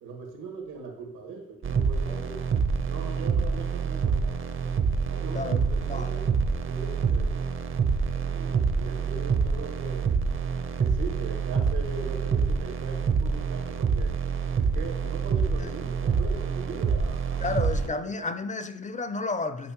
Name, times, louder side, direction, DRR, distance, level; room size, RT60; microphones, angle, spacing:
voice 1, 0.0-2.5 2.8-4.8 5.1-6.3 6.7-7.5 8.2-10.1 10.8-14.1 14.5-17.5 17.8-18.3, right 4 dB, 80° right, 1.9 m, -40 dB
sound 1, 1.6-17.9, right 5 dB, 45° right, 0.8 m, -27 dB
voice 2, 5.9-6.3 8.1-8.2 15.6-15.7 17.4-19.7, left 3 dB, 25° left, 0.5 m, -32 dB
9.8 x 5.3 x 3.0 m
cardioid pair, 90°, 30 cm